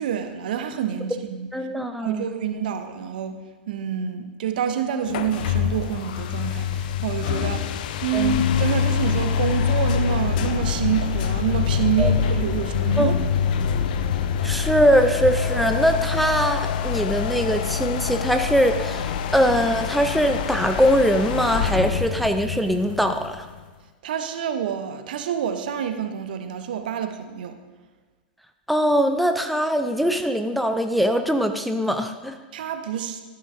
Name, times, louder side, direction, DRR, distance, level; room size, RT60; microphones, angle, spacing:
voice 1, 0.0-1.5 2.0-3.4 3.7-7.7 8.0-13.1 24.0-27.6 32.5-33.2, right 8 dB, 65° right, 8 dB, 0.9 m, -27 dB
voice 2, 1.5-2.3 8.1-8.4 12.0-12.1 13.0-13.1 14.4-23.5 28.7-32.4, equal, ahead, 6 dB, 0.6 m, -22 dB
sound 1, 5.1-23.6, left 7 dB, 60° left, 0.6 m, -25 dB
14.0 x 9.7 x 2.7 m, 1.3 s
figure-of-eight pair, 95°, 5 cm